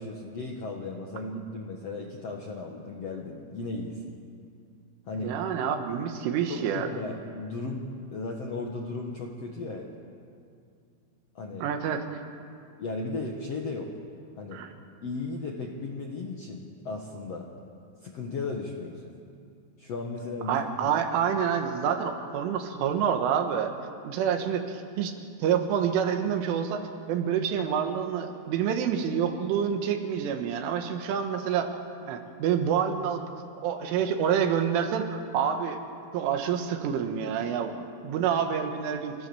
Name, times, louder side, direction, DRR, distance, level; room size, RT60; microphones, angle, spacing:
voice 1, 0.0-4.1 5.1-5.3 6.5-9.9 11.3-11.6 12.8-13.9 14.4-14.6 15.0-17.5 18.0-19.1 19.8-20.9, left 3 dB, 80° left, 0 dB, 1.4 m, -36 dB
voice 2, 5.2-6.9 11.6-12.0 14.5-14.7 20.5-23.7 24.0-25.2 25.4-31.7 32.1-33.3 33.6-35.8 36.1-39.2, right 8 dB, 90° right, 6 dB, 4.0 m, -27 dB
29.5 x 15.0 x 7.1 m, 2.3 s
omnidirectional pair, 5.5 m